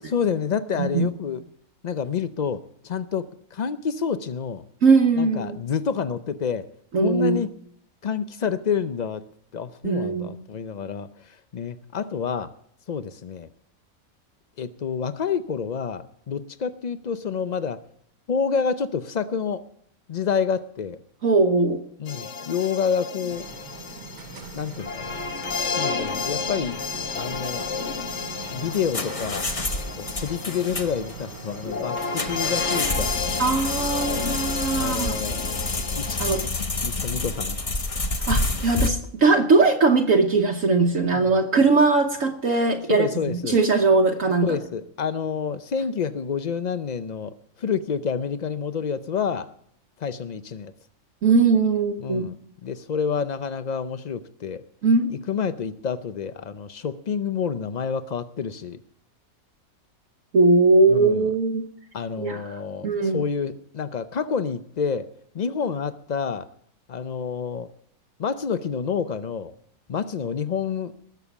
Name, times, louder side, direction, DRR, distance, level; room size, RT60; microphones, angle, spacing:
voice 1, 0.1-1.4 1.8-4.6 5.2-6.7 7.0-7.5 8.0-9.2 9.5-12.5 12.9-13.5 14.6-17.8 18.3-19.6 20.1-21.0 22.0-23.5 24.5-25.2 25.6-26.8 27.2-27.6 28.5-29.5 30.0-33.3 34.7-35.4 36.0-36.2 36.5-37.6 41.1-41.3 42.9-43.6 44.4-49.5 50.0-50.7 52.0-52.4 52.6-54.6 55.3-58.8 60.9-61.3 61.9-65.1 65.3-66.5 66.9-67.7 68.2-69.5 69.9-70.9, left 6 dB, 90° left, 12 dB, 0.3 m, -28 dB
voice 2, 0.8-1.1 4.8-5.6 6.9-7.4 9.8-10.3 21.2-21.8 33.4-35.2 36.2-36.4 38.3-43.1 43.4-44.6 51.2-52.3 54.8-55.1 60.3-61.7 62.2-62.4 62.8-63.2, right 3 dB, 60° right, 3 dB, 1.4 m, -20 dB
sound 1, 22.1-36.5, left 5 dB, 55° left, 1.2 m, -32 dB
sound 2, 23.3-33.2, right 4 dB, 75° right, 1.7 m, -40 dB
sound 3, 28.5-38.9, left 2 dB, 25° left, 0.9 m, -28 dB
19.5 x 7.0 x 7.0 m, 0.67 s
omnidirectional pair, 1.6 m